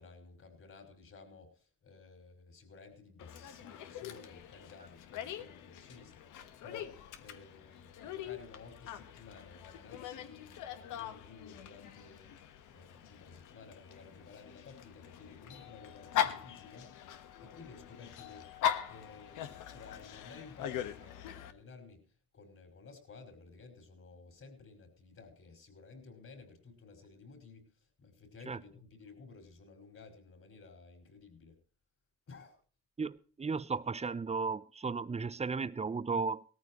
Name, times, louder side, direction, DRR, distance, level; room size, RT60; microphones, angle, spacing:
voice 1, 0.0-12.4 12.7-18.5 18.8-31.6 32.3-32.6, left 4 dB, 50° left, 5.6 m, -54 dB
Dog, 3.2-21.5, left 10 dB, 90° left, 1.4 m, -41 dB
voice 2, 33.0-36.4, right 4 dB, 20° right, 0.8 m, -35 dB
18.5 x 14.0 x 3.1 m
cardioid pair, 90°, 30 cm